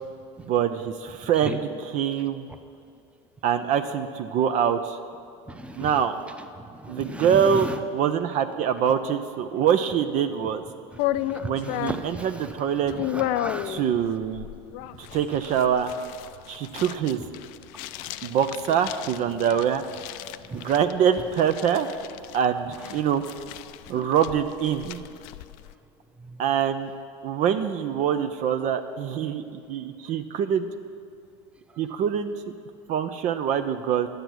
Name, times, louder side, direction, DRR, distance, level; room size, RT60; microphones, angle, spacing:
voice 1, 0.4-2.5 3.4-5.0 5.8-6.2 6.9-10.6 11.4-12.9 13.7-14.5 15.1-15.9 16.5-17.2 18.2-19.8 20.5-21.9 22.3-23.2 23.9-25.0 26.4-26.9 27.2-29.4 29.7-30.7 31.8-32.3 32.9-34.1, right 8 dB, 55° right, 8 dB, 0.6 m, -24 dB
voice 2, 5.5-5.9 6.8-7.8 11.2-12.4 12.9-13.8 20.5-20.7 23.9-24.1 26.3-26.4, right 1 dB, 10° right, 7 dB, 0.8 m, -35 dB
sound 1, 11.0-25.7, left 14 dB, 70° left, 0.4 m, -34 dB
10.0 x 8.1 x 6.1 m, 2.5 s
supercardioid pair, 100°, 15 cm